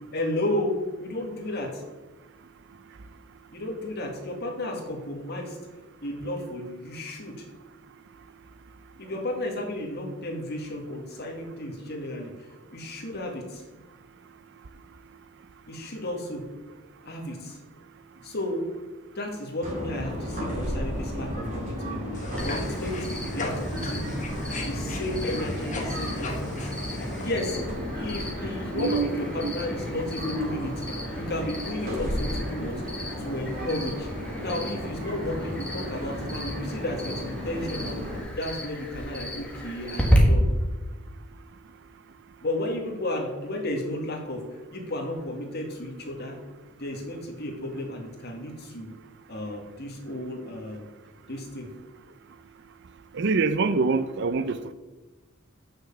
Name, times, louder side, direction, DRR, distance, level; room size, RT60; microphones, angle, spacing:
voice 1, 0.1-1.8 3.5-5.6 6.0-7.5 9.0-13.6 15.7-16.4 17.1-17.6 18.2-18.7 19.2-23.1 23.3-24.1 24.6-27.6 27.9-32.8 33.2-34.1 34.4-38.1 38.4-40.5 42.4-44.4 44.7-46.4 46.8-48.9 49.3-50.9 51.3-51.7, left 1 dB, 55° left, 2.0 m, -33 dB
sound 1, 19.6-38.2, equal, 40° right, 3.4 m, -34 dB
sound 2, 22.1-27.3, left 1 dB, 40° left, 1.4 m, -36 dB
Cricket, 22.4-40.2, equal, 5° left, 1.7 m, -35 dB
voice 2, 28.7-29.2 29.4-29.5 53.1-54.7, right 4 dB, 60° right, 0.5 m, -25 dB
6.9 x 6.4 x 7.0 m
head